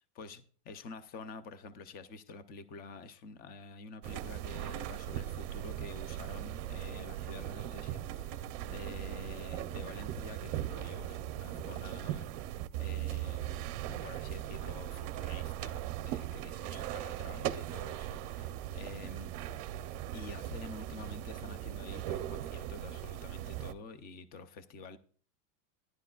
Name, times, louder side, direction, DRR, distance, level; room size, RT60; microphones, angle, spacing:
voice 1, 0.1-19.3 20.1-25.0, left 3 dB, 20° left, 0.5 m, -48 dB
sound 1, 4.0-23.7, right 12 dB, 45° right, 0.6 m, -39 dB
14.0 x 11.0 x 2.3 m
supercardioid pair, 160°, 45 cm